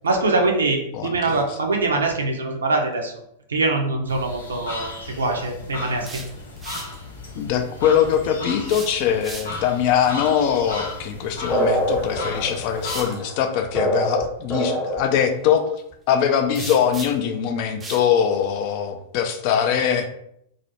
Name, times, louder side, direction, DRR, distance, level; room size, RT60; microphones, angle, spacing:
voice 1, 0.0-3.1 3.5-6.2, right 3 dB, 80° right, 2 dB, 0.4 m, -23 dB
sound 1, 4.1-13.1, left 3 dB, 80° left, 0.7 m, -35 dB
voice 2, 5.6-5.9 7.3-15.6 16.1-20.1, left 8 dB, 50° left, 6 dB, 0.3 m, -22 dB
sound 2, 5.8-7.0 8.6-9.8 11.8-12.0 12.8-13.2 16.5-17.3 17.8-18.1, right 3 dB, 20° right, 0.4 m, -37 dB
sound 3, 11.5-15.2, equal, 10° left, 0.8 m, -24 dB
2.4 x 2.0 x 2.8 m, 0.74 s
figure-of-eight pair, 100°, 0 cm